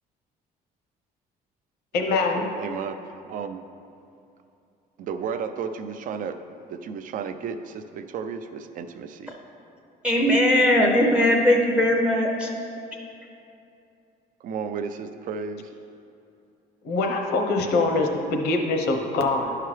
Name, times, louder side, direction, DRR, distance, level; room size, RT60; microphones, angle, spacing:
voice 1, 1.9-2.5 16.8-19.6, left 3 dB, 85° left, 3 dB, 0.9 m, -24 dB
voice 2, 2.6-3.0 3.3-3.6 5.0-6.4 6.7-9.3 10.9-11.2 14.4-15.7, right 6 dB, 55° right, 9 dB, 0.5 m, -33 dB
voice 3, 10.0-12.5, left 1 dB, 5° right, 1 dB, 0.6 m, -19 dB
11.0 x 5.8 x 3.2 m, 2.7 s
cardioid pair, 150°, 16 cm